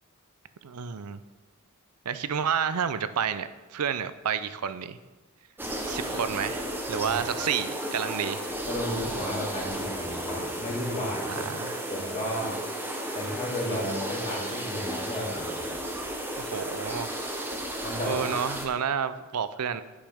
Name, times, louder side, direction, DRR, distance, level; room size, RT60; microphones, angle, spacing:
voice 1, 0.6-1.2 2.1-5.0 5.8-8.5 11.3-11.8 16.4-17.1 18.0-19.8, right 7 dB, 80° right, 13 dB, 0.5 m, -30 dB
sound 1, 5.6-18.7, right 1 dB, 10° right, 0.9 m, -34 dB
voice 2, 8.7-11.5 11.9-12.5 13.1-15.6 17.8-18.3, equal, 30° left, -3 dB, 2.3 m, -33 dB
10.0 x 8.7 x 3.5 m, 1.2 s
head